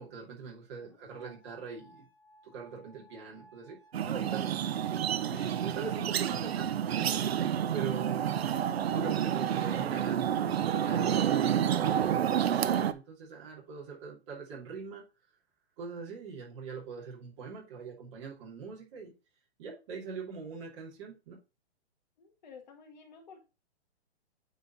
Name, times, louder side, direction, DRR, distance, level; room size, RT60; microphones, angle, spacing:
voice 1, 0.0-2.1 2.4-3.8 4.0-4.5 5.3-8.4 8.9-15.0 15.8-19.1 19.6-21.4, right 5 dB, 25° right, 2.8 m, -42 dB
voice 2, 0.8-1.4 5.3-5.7 22.2-23.4, left 6 dB, 40° left, 1.8 m, -53 dB
sound 1, 1.1-8.1, right 1 dB, 15° left, 1.1 m, -60 dB
sound 2, 3.9-12.9, right 9 dB, 65° right, 0.7 m, -29 dB
9.3 x 4.1 x 4.0 m
hypercardioid pair, 175°, 33 cm